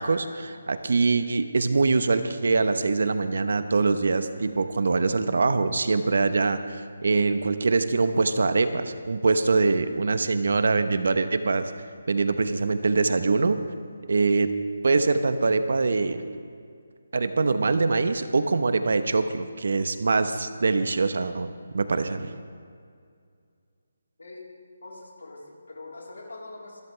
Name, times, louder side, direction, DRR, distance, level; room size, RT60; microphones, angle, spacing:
voice 1, 0.0-11.7 12.1-13.6 14.1-14.5 14.8-16.2 17.1-21.5 21.7-22.3, right 3 dB, 60° right, 10 dB, 1.0 m, -23 dB
voice 2, 24.8-26.8, left 2 dB, 85° left, -2 dB, 3.7 m, -43 dB
24.5 x 13.0 x 3.3 m, 2.2 s
hypercardioid pair, 175°, 0 cm